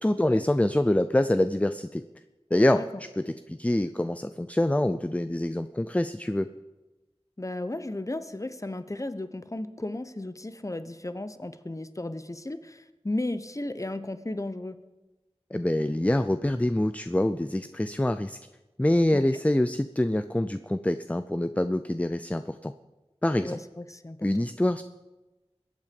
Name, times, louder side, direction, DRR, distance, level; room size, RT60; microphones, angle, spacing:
voice 1, 0.0-2.0 2.5-2.8 3.2-6.5 15.5-18.4 18.8-22.7 23.2-23.6 24.2-24.8, left 1 dB, 15° left, 11 dB, 0.5 m, -25 dB
voice 2, 7.4-14.8 19.1-19.2 23.4-24.3, left 1 dB, 30° left, 12 dB, 0.9 m, -34 dB
22.0 x 8.4 x 5.2 m, 1.1 s
wide cardioid pair, 45°, 11 cm